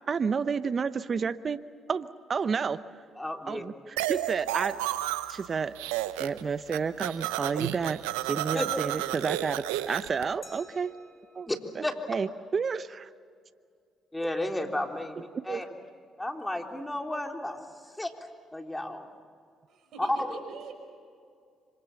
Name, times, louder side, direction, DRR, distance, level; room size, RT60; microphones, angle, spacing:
voice 1, 0.1-1.6 1.9-2.8 3.5-4.8 5.3-5.7 6.2-10.9 11.4-11.5 11.8-12.9 15.5-15.6, right 5 dB, 45° right, 14 dB, 0.8 m, -30 dB
voice 2, 3.2-3.6 8.5-8.7 11.5-11.6 11.8-11.9 14.1-15.7 16.2-17.6 18.0-18.1 18.5-19.1 20.0-20.3, left 1 dB, 10° left, 3 dB, 3.5 m, -32 dB
sound 1, 4.0-5.5 5.8-6.4 6.7-10.2, right 15 dB, 85° right, 0.7 m, -32 dB
Glass, 10.4-13.1, left 1 dB, 35° left, 6.8 m, -55 dB
voice 3, 19.7-20.7, right 5 dB, 70° right, 5 dB, 5.7 m, -44 dB
26.0 x 26.0 x 7.1 m, 2.2 s
hypercardioid pair, 55°, 0 cm